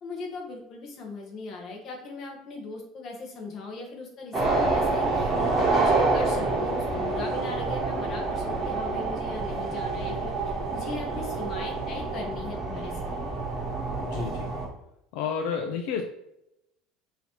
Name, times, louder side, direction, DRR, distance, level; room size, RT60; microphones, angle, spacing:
voice 1, 0.0-10.3 10.7-13.2 13.6-13.7, left 3 dB, 35° left, 0 dB, 1.0 m, -39 dB
sound 1, 4.3-14.7, right 3 dB, 20° right, 1.1 m, -27 dB
voice 2, 14.0-14.5 15.1-16.0, left 6 dB, 65° left, 4 dB, 0.4 m, -30 dB
5.5 x 2.8 x 3.0 m, 0.84 s
cardioid pair, 160°, 0 cm